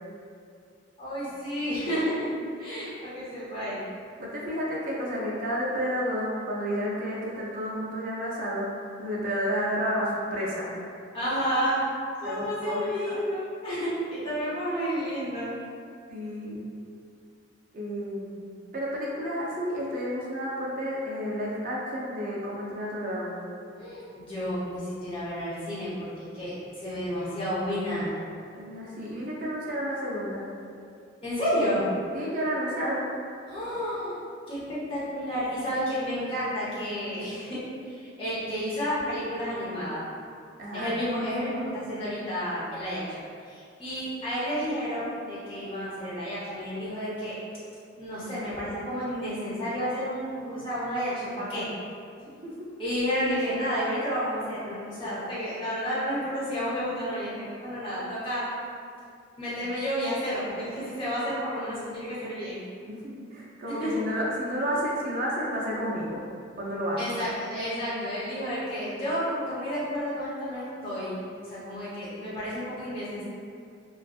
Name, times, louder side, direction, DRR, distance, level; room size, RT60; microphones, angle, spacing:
voice 1, 1.0-2.3 2.6-3.8 11.1-11.8 12.2-15.5 23.8-28.1 31.2-31.8 33.5-34.2 34.5-37.6 37.9-40.0 40.7-43.0 43.5-47.3 48.0-51.7 52.8-58.4 59.4-62.6 63.7-63.9 67.0-71.2 71.5-73.3, equal, 25° left, -10 dB, 0.7 m, -31 dB
voice 2, 4.2-8.7 9.0-10.7 12.2-13.2 16.1-16.7 17.7-18.4 18.7-23.4 28.5-30.4 32.1-33.1 40.6-40.9 52.3-52.5 62.9-66.2 66.6-67.0, equal, 40° right, -5 dB, 0.4 m, -31 dB
2.5 x 2.3 x 2.3 m, 2.3 s
head